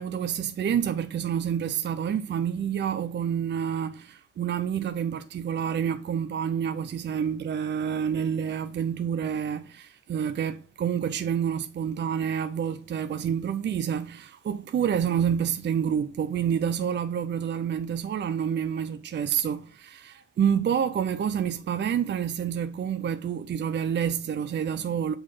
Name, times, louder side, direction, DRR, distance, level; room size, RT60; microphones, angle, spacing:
voice 1, 0.0-25.1, right 8 dB, 35° right, 0.5 m, -28 dB
6.2 x 3.8 x 4.9 m
cardioid pair, 90°, 30 cm